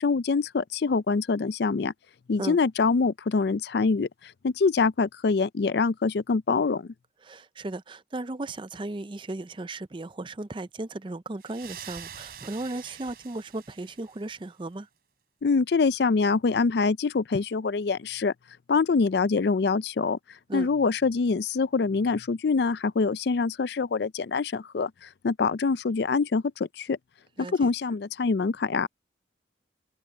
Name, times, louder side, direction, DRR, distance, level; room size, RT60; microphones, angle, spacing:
voice 1, 0.0-1.9 2.3-4.1 4.4-6.9 15.4-18.3 18.7-20.2 20.5-27.0 27.5-28.9, left 4 dB, 60° left, 0.4 m, -25 dB
voice 2, 7.2-14.9 20.5-20.7 27.4-27.7, right 2 dB, 25° right, 0.5 m, -36 dB
sound 1, 11.4-14.4, right 9 dB, 55° right, 3.8 m, -45 dB
open air
head